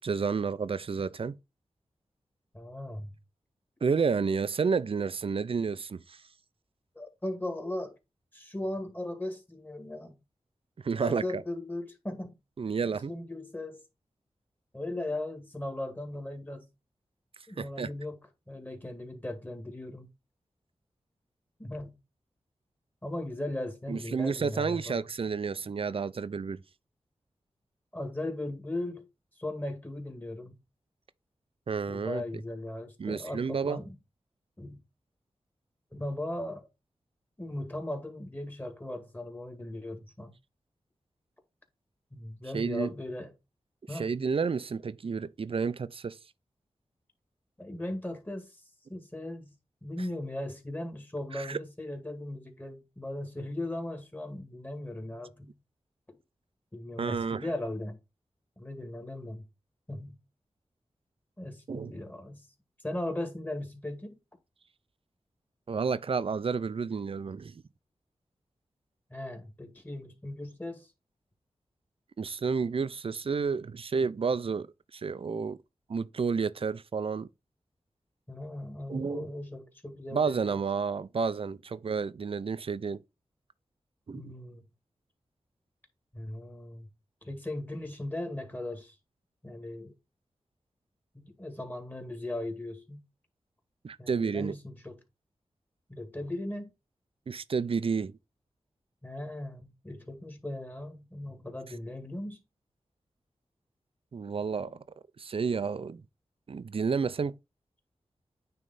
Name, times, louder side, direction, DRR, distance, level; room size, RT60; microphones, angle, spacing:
voice 1, 0.0-1.4 3.8-6.2 10.8-11.4 12.6-13.1 17.6-17.9 23.9-26.6 31.7-32.2 33.0-33.8 42.5-42.9 43.9-46.2 51.3-51.6 57.0-57.5 61.7-61.9 65.7-67.6 72.2-74.7 74.9-75.6 75.9-77.3 78.9-79.3 80.1-83.0 84.1-84.3 93.8-94.6 97.3-98.2 104.1-104.8 105.2-106.0 106.5-107.4, right 5 dB, 55° right, 0.5 m, -30 dB
voice 2, 2.5-3.2 7.0-7.9 8.3-10.1 11.0-12.4 12.9-13.8 14.7-16.7 17.5-20.1 21.6-21.9 23.0-25.0 27.9-29.1 29.4-30.6 31.9-34.0 34.6-34.8 35.9-36.7 37.4-40.3 42.1-43.3 43.9-44.1 47.6-48.6 48.9-49.6 49.8-55.6 56.1-56.2 56.7-58.0 58.6-59.4 59.9-60.2 61.4-62.5 62.8-64.2 69.1-70.9 78.3-80.6 84.1-84.6 86.1-86.9 87.2-89.0 89.4-89.9 91.1-93.0 94.0-94.9 95.9-96.7 99.0-102.4, left 1 dB, 15° left, 2.0 m, -38 dB
9.2 x 3.3 x 4.0 m
cardioid pair, 55°, 11 cm